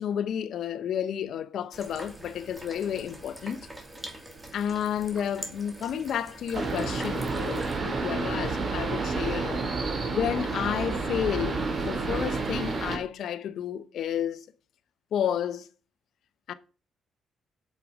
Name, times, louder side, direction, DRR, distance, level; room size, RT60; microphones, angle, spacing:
voice 1, 0.0-3.7 4.5-9.6 10.1-14.5 15.1-15.7 16.5-16.6, left 9 dB, 70° left, 0.9 m, -31 dB
sound 1, 1.7-7.8, right 1 dB, 15° right, 2.5 m, -43 dB
sound 2, 6.5-13.0, right 3 dB, 40° right, 3.2 m, -30 dB
7.6 x 7.5 x 5.0 m
cardioid pair, 90°, 0 cm